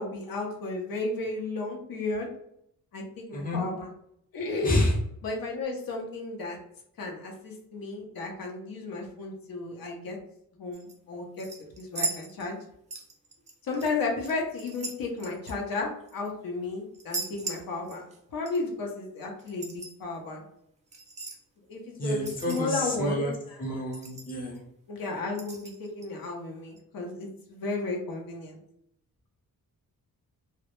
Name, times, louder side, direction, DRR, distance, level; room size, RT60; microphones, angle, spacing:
voice 1, 0.0-2.3 2.9-3.9 4.3-4.8 5.2-6.6 7.0-10.2 10.6-11.5 11.8-12.6 13.6-20.4 21.7-23.8 24.9-28.6, left 3 dB, 70° left, 0 dB, 0.6 m, -33 dB
voice 2, 4.6-5.0 22.0-23.3 23.6-24.6, left 1 dB, 25° left, -2 dB, 0.6 m, -28 dB
sound 1, 10.7-11.0 11.4-12.6 12.9-13.9 14.2-16.3 16.9-18.2 18.5-18.6 19.4-19.9 20.9-21.4 22.2-22.9 23.3-23.4 23.6-23.7 23.9-24.6 25.3-26.1 26.8-26.9, right 3 dB, 20° right, 0.4 m, -38 dB
2.0 x 2.0 x 2.9 m, 0.74 s
wide cardioid pair, 130°, 36 cm